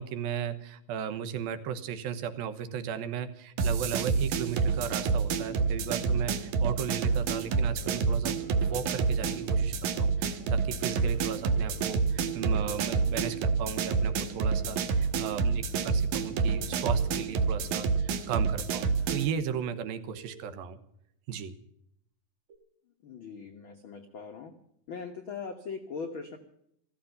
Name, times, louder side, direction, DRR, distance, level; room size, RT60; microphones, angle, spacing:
voice 1, 0.0-8.4 8.7-20.8 21.3-21.5, right 8 dB, 85° right, 10 dB, 2.9 m, -36 dB
sound 1, 3.6-19.3, right 5 dB, 65° right, 2.3 m, -28 dB
sound 2, 7.8-8.8 10.8-11.8 13.8-14.8 16.8-17.8 18.3-18.4 19.5-20.5 22.5-22.6, right 5 dB, 45° right, 2.4 m, -51 dB
voice 2, 23.0-24.5 24.9-26.4, left 5 dB, 80° left, 5 dB, 1.1 m, -40 dB
14.5 x 14.5 x 6.7 m, 0.73 s
omnidirectional pair, 4.2 m